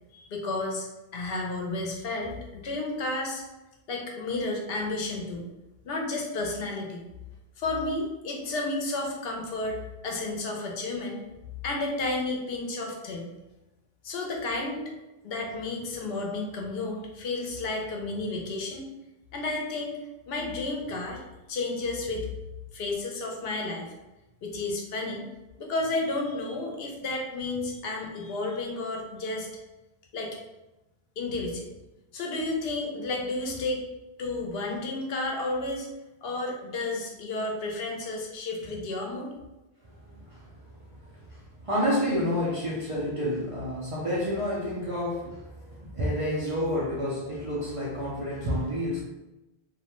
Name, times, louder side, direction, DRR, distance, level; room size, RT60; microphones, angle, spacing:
voice 1, 0.1-0.9 1.1-3.4 3.9-5.5 5.8-7.0 7.6-11.2 11.6-13.3 14.0-14.9 15.2-18.8 19.3-20.0 20.3-21.2 21.5-22.3 22.7-23.9 24.4-25.3 25.6-29.5 30.1-30.4 31.2-31.7 32.1-33.8 34.2-35.9 36.2-39.3, left 2 dB, 75° left, 0 dB, 0.8 m, -32 dB
voice 2, 39.9-40.6 40.9-49.0, equal, 50° right, -6 dB, 0.4 m, -30 dB
2.3 x 2.1 x 2.9 m, 1.0 s
omnidirectional pair, 1.0 m